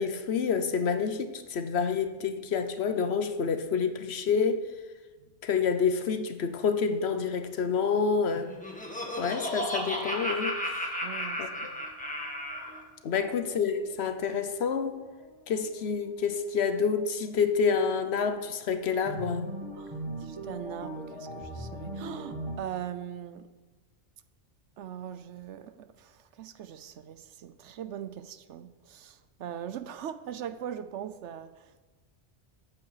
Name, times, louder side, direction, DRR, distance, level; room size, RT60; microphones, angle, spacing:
voice 1, 0.0-4.6 5.4-8.5 9.2-10.9 11.4-11.7 13.0-15.0 15.5-19.5, left 6 dB, 65° left, 1.0 m, -28 dB
Laughter, 8.3-12.8, equal, 5° left, 1.5 m, -34 dB
voice 2, 11.0-11.8 13.1-13.3 19.8-23.5 24.8-31.8, right 9 dB, 80° right, 1.0 m, -41 dB
sound 1, 11.4-22.5, right 1 dB, 25° right, 2.3 m, -42 dB
14.0 x 8.5 x 4.9 m
omnidirectional pair, 1.2 m